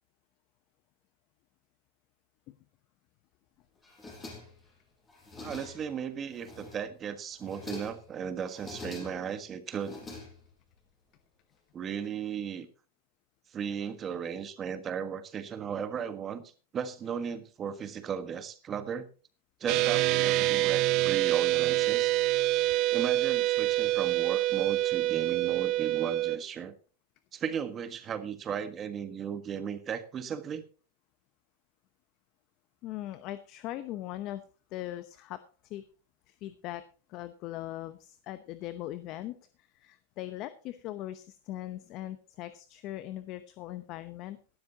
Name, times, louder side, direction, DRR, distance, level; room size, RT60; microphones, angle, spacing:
sound 1, 3.8-4.7 5.1-6.0 6.3-7.0 7.3-8.1 8.5-9.4 9.7-10.7, left 2 dB, 15° left, 6.3 m, -45 dB
voice 1, 5.4-10.0 11.7-12.7 13.5-16.4 16.7-19.1 19.6-22.1 22.9-26.7 27.3-30.6, right 7 dB, 25° right, 10 dB, 1.5 m, -36 dB
sound 2, 19.7-26.4, right 16 dB, 45° right, 0.7 m, -26 dB
voice 2, 32.8-34.4 34.7-35.8 36.3-36.8 37.1-39.3 39.7-44.4, left 14 dB, 40° left, 12 dB, 0.9 m, -40 dB
17.5 x 12.0 x 2.9 m, 0.37 s
supercardioid pair, 140°, 0 cm